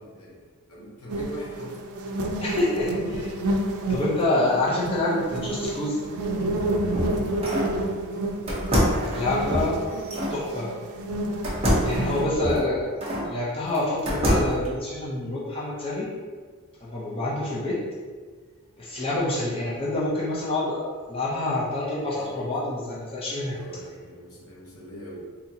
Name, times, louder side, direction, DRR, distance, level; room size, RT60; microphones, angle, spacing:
voice 1, 0.0-1.8 7.6-8.3 9.5-10.0 12.2-12.7 17.2-17.5 22.0-22.4 23.1-25.3, equal, 80° left, -4 dB, 1.0 m, -43 dB
sound 1, 1.1-12.3, right 1 dB, 85° right, 0.5 m, -30 dB
voice 2, 2.4-3.3 3.9-6.0 9.1-9.8 10.3-10.7 11.8-12.8 13.3-16.1 16.8-17.8 18.8-23.6, left 2 dB, 25° left, -7 dB, 0.6 m, -27 dB
sound 2, 6.6-7.8 8.5-10.4 11.4-13.3 13.7-14.7, equal, 25° right, 0.8 m, -26 dB
4.0 x 2.8 x 2.8 m, 1.5 s
head